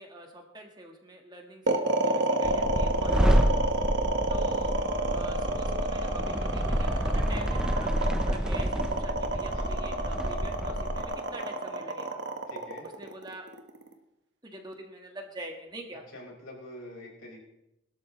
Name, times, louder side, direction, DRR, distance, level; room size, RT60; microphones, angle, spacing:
voice 1, 0.0-3.7 4.3-4.7 5.1-12.2 12.8-13.5 14.4-16.0, right 1 dB, 20° right, 2 dB, 1.6 m, -45 dB
sound 1, 1.7-13.9, right 2 dB, 60° right, 1.4 m, -29 dB
sound 2, 2.4-11.0, equal, 5° right, 0.8 m, -29 dB
voice 2, 12.5-12.9 16.1-17.4, left 1 dB, 85° left, -1 dB, 5.2 m, -45 dB
22.0 x 12.5 x 3.2 m, 0.91 s
head